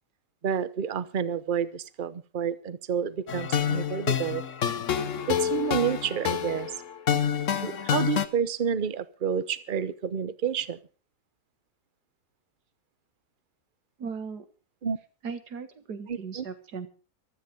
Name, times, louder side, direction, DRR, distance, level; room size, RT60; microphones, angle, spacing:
voice 1, 0.4-4.5 5.3-6.7 7.6-10.8 14.8-15.0 16.1-16.5, right 8 dB, 40° right, 0.9 m, -29 dB
sound 1, 3.3-8.3, left 8 dB, 55° left, 1.3 m, -28 dB
voice 2, 14.0-14.5 15.2-16.9, right 5 dB, 80° right, 2.2 m, -37 dB
15.0 x 13.0 x 5.2 m
omnidirectional pair, 1.7 m